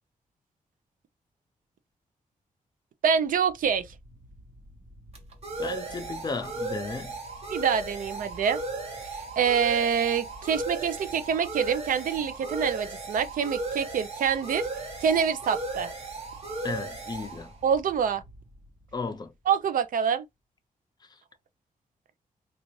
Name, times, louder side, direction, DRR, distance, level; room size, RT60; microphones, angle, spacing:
voice 1, 3.0-3.9 7.5-8.6 9.1-14.7 15.0-15.9 17.6-18.2 19.5-20.2, right 7 dB, 75° right, 0.5 m, -26 dB
sound 1, 3.5-18.9, right 2 dB, 45° right, 1.0 m, -36 dB
voice 2, 5.6-7.1 16.6-17.5 18.9-19.3, left 4 dB, 30° left, 0.5 m, -34 dB
3.8 x 2.4 x 3.1 m
wide cardioid pair, 160°, 14 cm